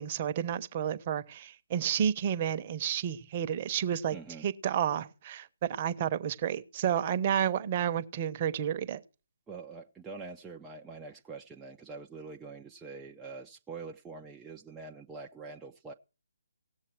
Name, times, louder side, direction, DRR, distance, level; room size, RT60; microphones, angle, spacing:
voice 1, 0.0-4.2 4.4-9.0, right 9 dB, 35° right, 1.0 m, -31 dB
voice 2, 4.1-4.5 9.5-15.9, right 4 dB, 10° right, 0.7 m, -45 dB
17.5 x 7.2 x 4.6 m
figure-of-eight pair, 150°, 0 cm